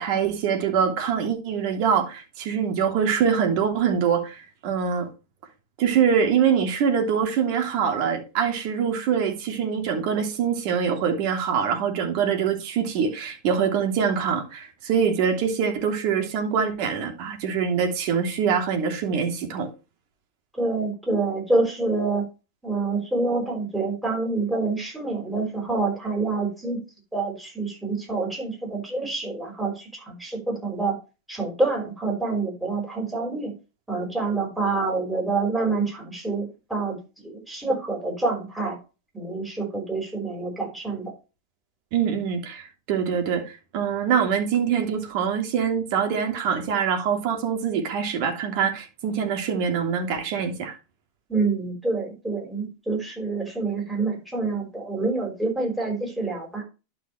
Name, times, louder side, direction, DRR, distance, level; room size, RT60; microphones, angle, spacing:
voice 1, 0.0-5.1 5.8-19.7 41.9-50.7, right 7 dB, 55° right, 2.9 m, -24 dB
voice 2, 20.5-22.2 22.6-26.8 27.1-31.0 31.3-33.5 33.9-38.8 39.1-41.1 51.3-56.6, right 3 dB, 5° right, 5.0 m, -27 dB
11.5 x 5.6 x 3.2 m
hypercardioid pair, 115°, 0 cm